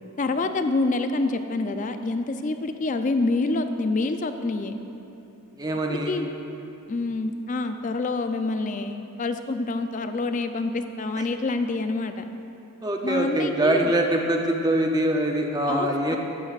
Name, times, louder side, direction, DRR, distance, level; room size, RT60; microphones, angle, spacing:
voice 1, 0.2-4.8 5.9-6.3 6.9-12.2 13.0-13.9 15.7-16.2, left 3 dB, 35° left, 8 dB, 0.4 m, -27 dB
voice 2, 5.6-6.2 12.8-16.2, right 1 dB, 20° right, 2 dB, 0.6 m, -24 dB
13.0 x 9.2 x 2.4 m, 2.9 s
head